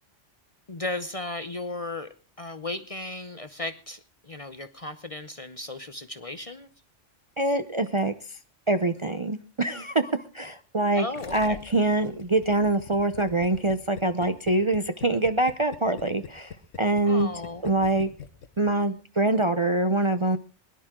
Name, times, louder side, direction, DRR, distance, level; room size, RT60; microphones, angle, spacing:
voice 1, 0.7-2.1 2.4-6.7 10.9-11.6 17.0-17.6, left 2 dB, 35° left, 11 dB, 0.7 m, -35 dB
voice 2, 7.4-8.4 8.7-11.0 11.3-17.3 17.6-18.1 18.6-20.4, right 2 dB, 30° right, 9 dB, 0.6 m, -24 dB
Gurgling, 11.2-18.7 19.0-19.1, left 7 dB, 85° left, 1.5 m, -43 dB
22.0 x 11.0 x 3.7 m, 0.35 s
omnidirectional pair, 1.3 m